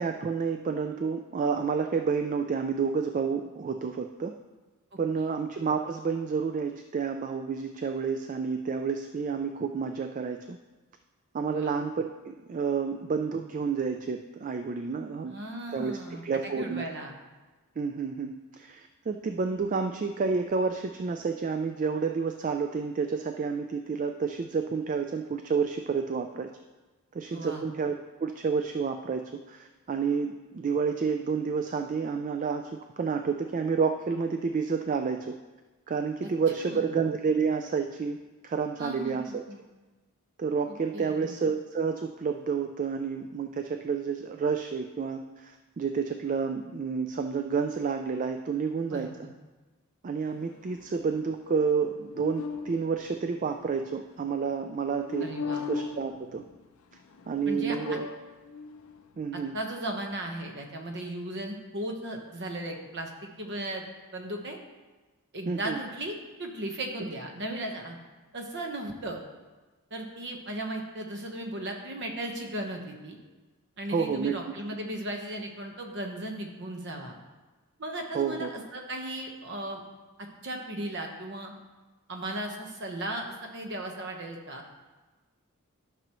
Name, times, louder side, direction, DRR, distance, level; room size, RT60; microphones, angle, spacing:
voice 1, 0.0-4.3 5.0-10.6 11.3-15.3 15.7-16.8 17.8-26.5 27.1-35.3 35.9-38.2 38.4-39.4 40.4-49.1 50.0-55.3 55.7-56.4 57.3-58.1 59.2-59.5 65.5-65.8 73.9-74.4 78.1-78.5, right 5 dB, 35° right, 6 dB, 0.3 m, -30 dB
voice 2, 4.9-5.3 11.5-11.8 15.3-17.1 27.3-27.6 36.6-37.0 38.8-39.6 40.7-41.4 48.9-49.1 55.2-55.7 57.4-58.0 59.3-63.8 64.1-64.6 65.3-68.0 68.3-69.2 69.9-73.2 73.8-77.2 77.8-79.8 80.4-81.5 82.1-84.6, right 1 dB, 50° right, 3 dB, 1.1 m, -36 dB
sound 1, 50.2-54.3 55.0-56.7 56.9-59.3, left 5 dB, 70° left, 0.5 m, -40 dB
12.0 x 6.0 x 3.0 m, 1.2 s
head